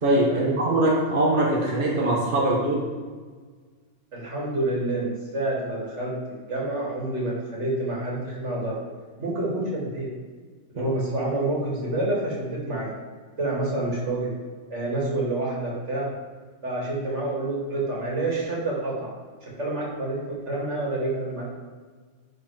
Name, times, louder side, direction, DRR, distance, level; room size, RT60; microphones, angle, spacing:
voice 1, 0.0-2.8 10.8-10.9, right 1 dB, 45° right, -2 dB, 1.3 m, -22 dB
voice 2, 4.1-8.8 9.2-10.1 10.7-12.9 13.4-14.3 14.7-16.2 16.6-19.2 19.4-21.5, right 2 dB, 70° right, -3 dB, 2.5 m, -28 dB
11.0 x 4.2 x 4.7 m, 1.5 s
omnidirectional pair, 1.2 m